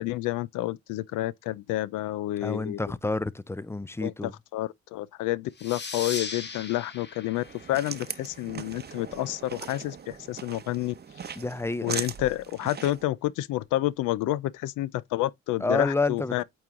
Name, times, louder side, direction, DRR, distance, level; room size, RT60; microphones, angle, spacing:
voice 1, 0.0-2.8 4.0-11.0 11.8-16.4, left 16 dB, 90° left, 0.5 m, -29 dB
voice 2, 2.4-4.3 11.4-12.0 15.6-16.4, left 3 dB, 10° left, 0.4 m, -29 dB
sound 1, 5.6-8.8, left 4 dB, 35° left, 1.4 m, -39 dB
sound 2, 7.3-13.0, right 7 dB, 35° right, 0.7 m, -39 dB
8.7 x 3.0 x 3.6 m
cardioid pair, 90°, 30 cm